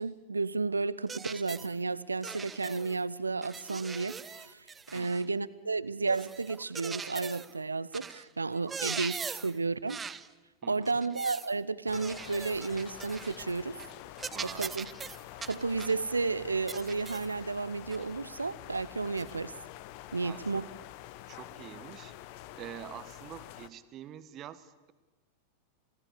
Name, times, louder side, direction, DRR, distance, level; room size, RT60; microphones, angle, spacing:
voice 1, 0.0-10.0 10.7-13.8 14.6-14.9 15.5-19.5 20.1-20.7, right 4 dB, 80° right, 19 dB, 0.7 m, -32 dB
sound 1, 1.1-1.7 2.2-3.0 3.4-5.3 6.1-7.5 7.9-8.2 8.5-9.6 9.9-10.3 10.9-11.5 11.9-13.5 13.8-13.9 14.2-16.0 16.7-17.3 17.9-18.0 19.2-19.3, right 5 dB, 15° right, 0.7 m, -41 dB
voice 2, 4.9-5.3 8.7-8.8 9.4-9.5 10.6-11.0 14.3-14.7 19.2-19.3 20.2-20.6 21.3-22.1 22.5-24.9, right 11 dB, 35° right, 14 dB, 1.2 m, -46 dB
sound 2, 11.9-23.7, left 15 dB, 45° left, 0.9 m, -47 dB
27.5 x 18.0 x 6.8 m, 1.2 s
figure-of-eight pair, 90°, 0 cm